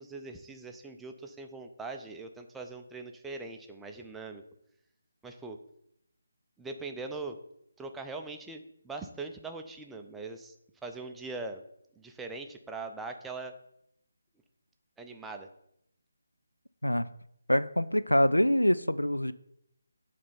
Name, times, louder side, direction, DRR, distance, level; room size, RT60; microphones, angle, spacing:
voice 1, 0.0-4.4 5.2-5.6 6.6-7.4 7.8-10.5 10.8-11.6 12.0-13.5 15.0-15.5, right 3 dB, 5° right, 4 dB, 0.5 m, -41 dB
voice 2, 17.5-19.3, equal, 90° left, 14 dB, 0.4 m, -25 dB
8.6 x 3.3 x 5.7 m, 0.76 s
figure-of-eight pair, 150°, 0 cm